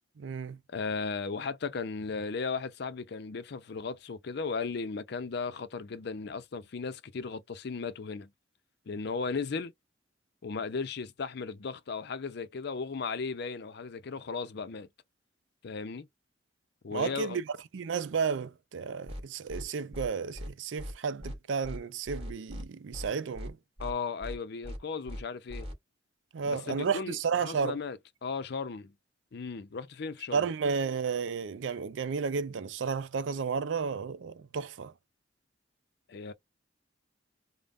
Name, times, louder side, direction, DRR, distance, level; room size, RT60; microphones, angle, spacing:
voice 1, 0.2-0.6 16.9-17.4 17.7-23.6 26.3-27.8 30.3-34.9, right 5 dB, 80° right, 0.5 m, -32 dB
voice 2, 0.7-8.3 8.9-9.7 10.4-14.9 15.6-16.1 16.8-17.4 23.8-25.7 26.4-28.9 29.3-30.5 36.1-36.3, left 4 dB, 60° left, 0.5 m, -36 dB
sound 1, 19.1-19.2 19.5-19.6 19.9-20.1 20.4-20.5 20.8-20.9 21.2-21.4 21.6-21.8 22.1-22.6 22.9-23.1 23.4-23.5 23.8-23.9 24.2-24.4 24.6-24.8 25.1-25.2 25.5-25.7, equal, 30° right, 2.7 m, -39 dB
5.2 x 2.1 x 2.5 m
head